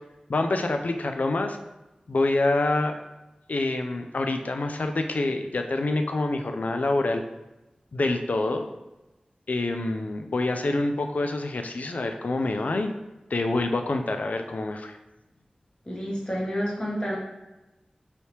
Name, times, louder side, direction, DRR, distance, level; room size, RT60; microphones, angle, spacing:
voice 1, 0.3-1.6 2.1-2.9 3.5-7.2 7.9-8.7 9.5-12.9 13.3-15.0, left 2 dB, 70° left, 6 dB, 0.3 m, -26 dB
voice 2, 15.8-17.2, equal, 30° left, -4 dB, 1.1 m, -29 dB
3.3 x 2.8 x 2.9 m, 1.0 s
cardioid pair, 40°, 3 cm